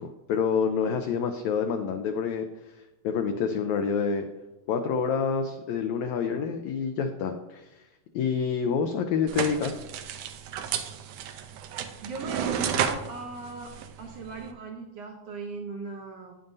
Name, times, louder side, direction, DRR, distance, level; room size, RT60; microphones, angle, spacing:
voice 1, 0.0-2.4 3.0-4.2 4.7-7.8 8.1-9.8, left 6 dB, 80° left, 5 dB, 1.7 m, -27 dB
sound 1, 9.3-14.5, right 8 dB, 90° right, 1.5 m, -32 dB
voice 2, 12.0-13.7 14.0-16.4, right 3 dB, 70° right, 1 dB, 1.6 m, -38 dB
9.1 x 9.0 x 2.6 m, 0.95 s
omnidirectional pair, 3.6 m